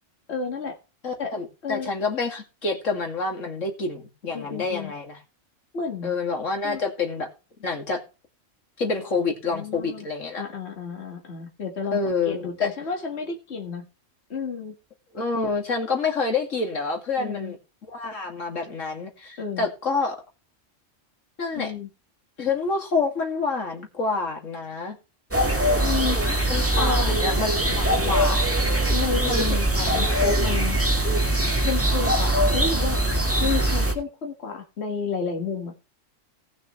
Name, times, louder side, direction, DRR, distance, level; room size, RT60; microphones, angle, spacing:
voice 1, 0.3-0.8 1.2-1.3 1.6-1.9 4.3-4.9 5.7-6.1 6.6-6.8 9.0-9.1 9.5-10.1 10.4-13.8 14.3-14.7 17.2-17.5 19.4-19.7 21.5-21.9 25.8-26.4 26.8-27.2 27.7-28.2 28.9-30.8 31.6-33.0 33.4-35.7, left 5 dB, 60° left, 2 dB, 2.0 m, -31 dB
voice 2, 1.0-5.2 6.0-7.3 7.6-8.0 8.8-10.4 11.9-12.7 15.1-17.6 17.9-20.2 21.4-21.7 22.4-25.0 26.5-27.7 28.0-28.4 29.2-29.7, left 4 dB, 90° left, 2 dB, 2.8 m, -27 dB
sound 1, 25.3-33.9, right 1 dB, 10° right, 1.8 m, -22 dB
18.0 x 6.5 x 3.2 m, 0.30 s
omnidirectional pair, 1.3 m